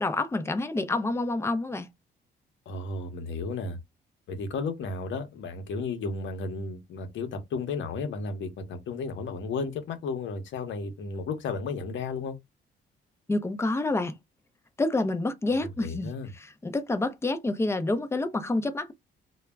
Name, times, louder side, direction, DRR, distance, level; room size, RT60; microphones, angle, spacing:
voice 1, 0.0-1.9 13.3-14.1 14.8-16.1 16.4-18.9, left 2 dB, 15° left, 0.5 m, -28 dB
voice 2, 2.7-3.8 4.3-12.4 15.6-16.3, left 4 dB, 70° left, 0.8 m, -33 dB
2.2 x 2.0 x 3.4 m
cardioid pair, 90°, 20 cm